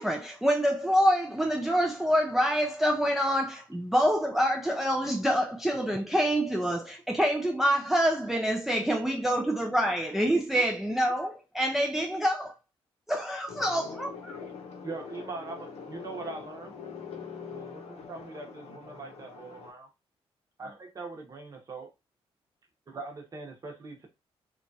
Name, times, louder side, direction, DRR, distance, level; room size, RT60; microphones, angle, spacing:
voice 1, 0.0-12.5 13.1-14.3, equal, 5° right, 0.3 m, -26 dB
voice 2, 13.5-19.7, left 5 dB, 75° left, 0.7 m, -43 dB
voice 3, 14.8-16.7 17.5-19.9 20.6-21.9 22.9-24.1, right 3 dB, 35° right, 0.8 m, -41 dB
2.9 x 2.3 x 2.6 m
cardioid pair, 135°, 10 cm